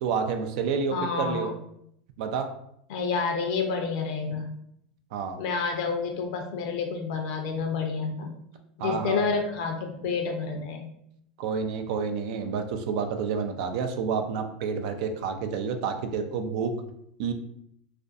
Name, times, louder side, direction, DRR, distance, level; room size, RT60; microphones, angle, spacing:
voice 1, 0.0-1.5 2.2-2.5 5.1-5.4 8.8-9.2 11.4-16.7 17.2-17.3, right 6 dB, 60° right, 6 dB, 0.3 m, -29 dB
voice 2, 0.9-1.5 2.9-4.5 5.4-8.4 8.8-10.9, left 5 dB, 60° left, 3 dB, 0.6 m, -29 dB
2.5 x 2.2 x 2.5 m, 0.73 s
hypercardioid pair, 100°, 5 cm